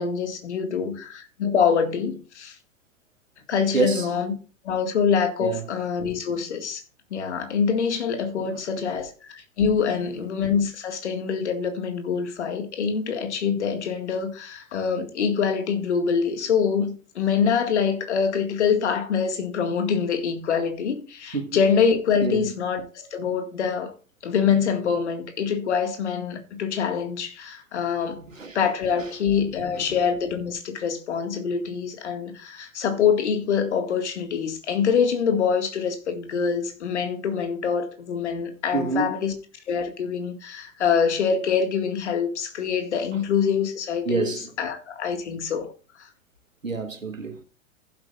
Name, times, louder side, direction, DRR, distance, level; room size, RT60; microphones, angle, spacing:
voice 1, 0.0-2.6 3.5-4.3 4.6-6.8 7.1-23.9 24.2-28.2 28.5-39.3 39.7-45.7, left 6 dB, 60° left, 2.1 m, -25 dB
voice 2, 3.7-4.1 5.4-5.6 8.4-9.0 21.3-21.6 22.2-22.5 28.1-28.6 29.0-29.2 29.6-29.9 38.7-39.3 44.1-44.5 46.6-47.4, right 4 dB, 85° right, 1.7 m, -28 dB
15.5 x 7.9 x 2.5 m
figure-of-eight pair, 100°, 38 cm